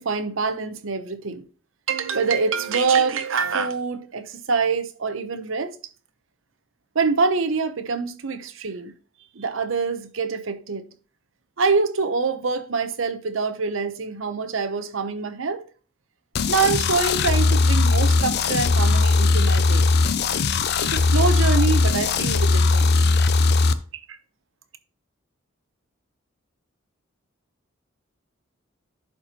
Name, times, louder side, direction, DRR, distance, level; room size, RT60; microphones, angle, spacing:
voice 1, 0.0-1.4 1.9-5.8 6.9-8.9 9.3-10.8 11.6-15.6 16.5-19.9 20.8-22.9 24.1-24.2, right 4 dB, 70° right, 0.8 m, -25 dB
sound 1, 16.3-23.7, left 3 dB, 50° left, 0.5 m, -19 dB
11.0 x 4.5 x 2.9 m
head